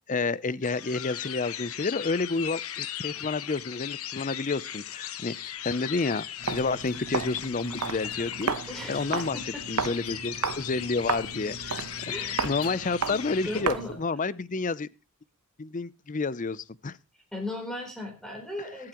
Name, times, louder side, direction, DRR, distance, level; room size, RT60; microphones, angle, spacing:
voice 1, 0.1-8.5 8.9-9.4 9.7-12.1 12.4-14.9 15.6-17.0, left 3 dB, 35° left, 0.6 m, -30 dB
sound 1, 0.6-13.6, left 11 dB, 70° left, 1.1 m, -37 dB
sound 2, 5.7-8.9 9.2-10.7 11.2-11.3, right 2 dB, 15° right, 2.2 m, -53 dB
Walk footsteps, 6.4-14.1, right 5 dB, 75° right, 1.0 m, -34 dB
voice 2, 8.7-9.6 12.1-13.9 17.3-18.9, left 1 dB, 5° left, 3.9 m, -38 dB
22.5 x 8.7 x 3.0 m
head